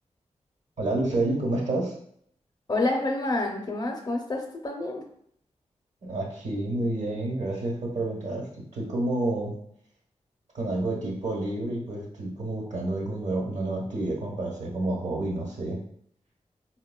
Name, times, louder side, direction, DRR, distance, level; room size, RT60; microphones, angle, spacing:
voice 1, 0.8-1.9 6.0-9.6 10.5-15.8, right 2 dB, 80° right, -3 dB, 1.1 m, -29 dB
voice 2, 2.7-5.0, left 2 dB, 35° left, 2 dB, 0.5 m, -28 dB
4.2 x 2.2 x 2.2 m, 0.68 s
wide cardioid pair, 90°, 12 cm